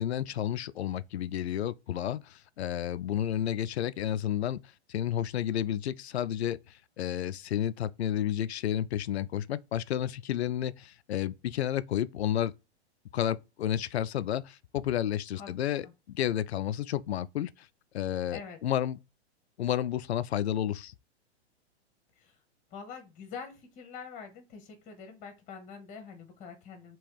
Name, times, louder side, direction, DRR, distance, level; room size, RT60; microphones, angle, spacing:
voice 1, 0.0-4.6 4.9-6.6 7.0-12.5 13.1-17.5 17.9-19.0 19.6-20.9, left 11 dB, 70° left, 0.5 m, -31 dB
voice 2, 22.7-27.0, left 6 dB, 20° left, 1.0 m, -45 dB
3.5 x 3.0 x 4.5 m
figure-of-eight pair, 110°, 34 cm